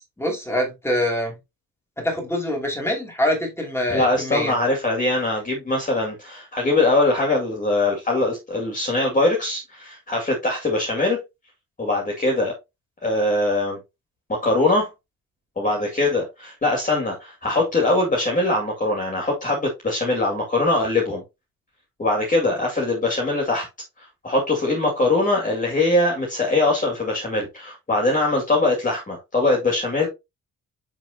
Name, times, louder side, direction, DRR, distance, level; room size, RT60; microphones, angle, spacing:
voice 1, 0.0-1.3 2.0-4.5, left 1 dB, 5° left, 2.7 m, -25 dB
voice 2, 3.9-11.2 11.8-12.5 13.0-13.8 14.3-14.9 15.6-21.2 22.0-23.7 24.0-30.1, left 2 dB, 25° left, 2.2 m, -22 dB
6.4 x 6.2 x 2.8 m
cardioid pair, 145°, 34 cm